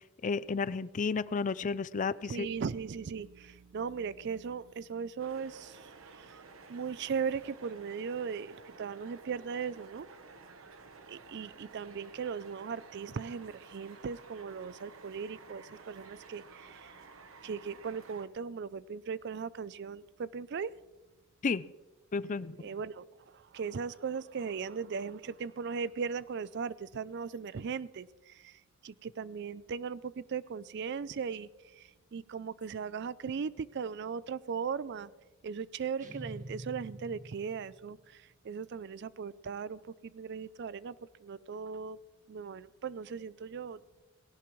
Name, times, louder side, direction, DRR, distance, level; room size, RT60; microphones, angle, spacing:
voice 1, 0.2-2.5 21.4-21.6 22.1-22.6, left 4 dB, 40° left, 17 dB, 0.4 m, -32 dB
voice 2, 2.3-6.4 6.7-10.1 11.1-16.9 17.4-20.7 22.6-35.1 35.4-41.0 41.2-42.0 42.3-43.8, right 6 dB, 60° right, 18 dB, 0.4 m, -38 dB
sound 1, 5.2-18.3, right 4 dB, 85° right, 1.1 m, -53 dB
sound 2, 36.0-38.0, right 1 dB, 40° right, 1.6 m, -46 dB
18.0 x 17.0 x 3.2 m, 1.1 s
head